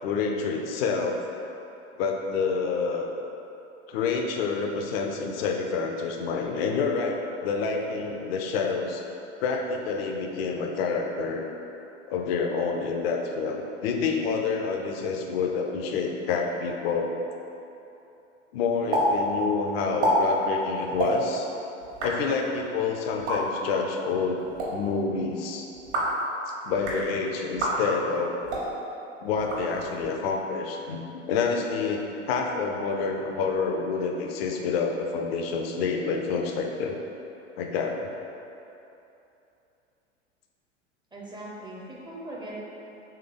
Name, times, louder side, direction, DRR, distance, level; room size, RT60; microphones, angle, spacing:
voice 1, 0.0-1.2 2.0-3.1 3.9-7.2 7.4-9.0 9.4-11.5 12.1-17.2 18.5-21.5 22.0-24.4 24.7-25.7 26.7-28.4 29.2-37.0 37.6-38.1, left 5 dB, 55° left, 2 dB, 0.5 m, -28 dB
sound 1, 18.9-19.1 19.3-19.4 19.8-20.1 20.9-21.1 21.8-22.1 23.1-23.4 24.4-24.7 25.7-26.2 26.7-27.0 27.5-27.7 28.4-28.7 29.4-30.1, right 1 dB, 65° right, 1.2 m, -28 dB
voice 2, 41.1-42.6, right 1 dB, 15° right, -4 dB, 0.5 m, -40 dB
3.4 x 3.3 x 3.7 m, 2.9 s
figure-of-eight pair, 90°, 36 cm